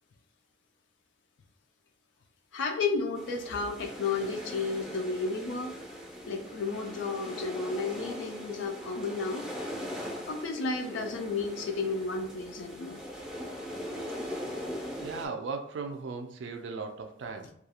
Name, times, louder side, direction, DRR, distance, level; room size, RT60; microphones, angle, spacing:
voice 1, 2.5-5.8 6.3-9.4 10.3-13.0, left 4 dB, 75° left, 3 dB, 0.4 m, -32 dB
sound 1, 3.2-15.3, equal, ahead, 0.5 m, -40 dB
voice 2, 15.0-17.5, right 4 dB, 70° right, 4 dB, 0.4 m, -37 dB
2.4 x 2.3 x 2.8 m, 0.70 s
head